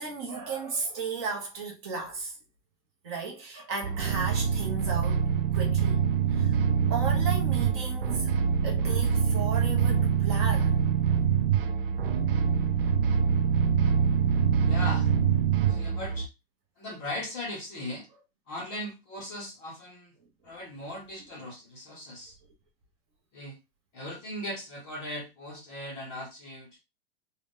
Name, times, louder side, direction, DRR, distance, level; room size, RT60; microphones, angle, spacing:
voice 1, 0.0-2.4 3.0-5.2 5.5-6.0 6.3-6.5 6.9-8.3 8.6-10.8, right 4 dB, 25° right, 0.7 m, -35 dB
sound 1, 3.8-16.3, right 7 dB, 65° right, 0.5 m, -25 dB
voice 2, 14.7-15.1 15.6-16.3 16.8-18.1 18.5-20.1 20.4-22.4 23.3-23.6 23.9-26.8, left 1 dB, 20° left, 0.6 m, -38 dB
3.8 x 2.1 x 3.5 m
supercardioid pair, 180°, 31 cm